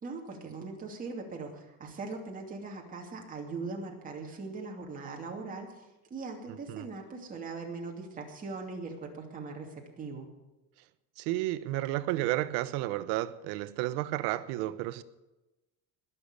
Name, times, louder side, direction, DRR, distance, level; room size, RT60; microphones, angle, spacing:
voice 1, 0.0-10.3, right 3 dB, 25° right, 2.6 m, -40 dB
voice 2, 11.2-15.0, right 15 dB, 85° right, 0.9 m, -32 dB
20.5 x 6.9 x 8.2 m
cardioid pair, 160°, 35 cm